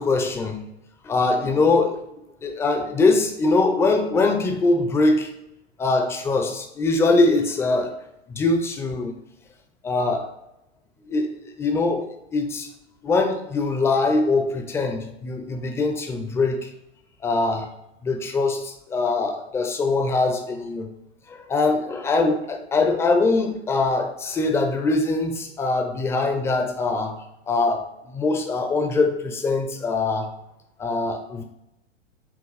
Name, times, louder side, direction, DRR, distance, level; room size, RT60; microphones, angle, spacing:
voice 1, 0.0-0.6 1.0-2.0 2.4-5.3 5.8-7.9 8.3-9.1 9.8-10.3 11.1-11.3 11.6-12.1 12.3-12.7 13.0-16.7 17.2-17.7 18.0-20.9 21.5-27.2 27.5-30.3 30.8-31.4, left 3 dB, 10° left, 5 dB, 0.4 m, -22 dB
5.9 x 2.2 x 4.0 m, 0.84 s
figure-of-eight pair, 100°, 35 cm